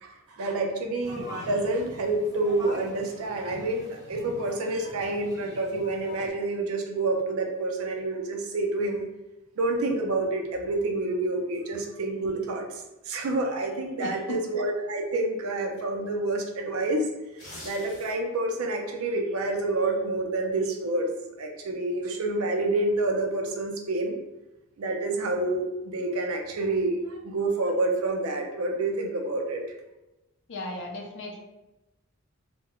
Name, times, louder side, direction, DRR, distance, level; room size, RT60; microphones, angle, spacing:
voice 1, 0.0-9.0 9.6-17.1 17.6-24.2 24.8-29.6, right 2 dB, 70° right, 2 dB, 0.4 m, -28 dB
sound 1, 1.0-6.3, equal, 15° right, 0.7 m, -43 dB
voice 2, 14.0-14.4 30.5-31.4, left 2 dB, 55° left, 0 dB, 0.5 m, -36 dB
sound 2, 17.2-18.4 18.8-19.0, left 1 dB, 35° left, 1.2 m, -44 dB
2.3 x 2.1 x 2.9 m, 0.99 s
head